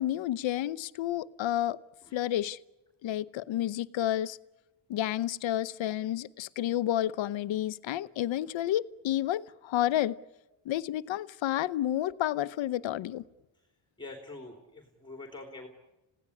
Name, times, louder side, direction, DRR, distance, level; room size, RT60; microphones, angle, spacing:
voice 1, 0.0-1.8 2.1-2.6 3.0-4.4 4.9-10.2 10.6-13.2, left 12 dB, 70° left, 14 dB, 0.8 m, -30 dB
voice 2, 14.0-15.7, left 2 dB, 10° left, 3 dB, 2.9 m, -45 dB
30.0 x 17.0 x 9.9 m, 1.1 s
cardioid pair, 135°, 48 cm